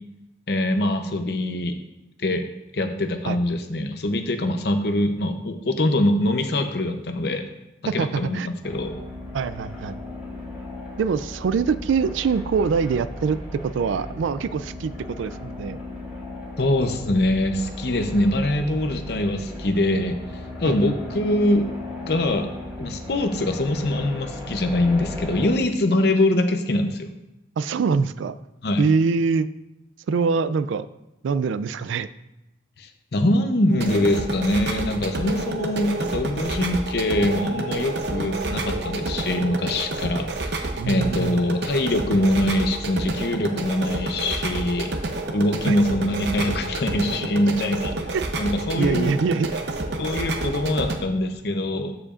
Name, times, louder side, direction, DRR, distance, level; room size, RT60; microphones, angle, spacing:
voice 1, 0.5-1.7 2.2-2.4 2.7-7.4 7.9-8.4 8.6-9.0 16.6-20.2 20.6-21.7 22.0-22.5 22.8-27.1 28.6-28.8 32.8-44.9 45.3-47.9 48.3-49.2 50.0-52.0, left 1 dB, 55° left, 6 dB, 0.7 m, -23 dB
voice 2, 7.9-8.5 9.3-10.0 11.0-15.8 20.6-20.8 27.6-28.4 28.8-29.5 30.1-30.9 31.2-32.1 40.8-41.4 45.7-45.8 48.1-48.2 48.8-49.6, right 5 dB, 80° right, 14 dB, 0.3 m, -24 dB
sound 1, 8.6-25.5, left 1 dB, 10° right, 2.4 m, -36 dB
sound 2, 33.7-51.0, right 2 dB, 60° right, 0.7 m, -29 dB
13.5 x 5.0 x 2.5 m, 0.95 s
head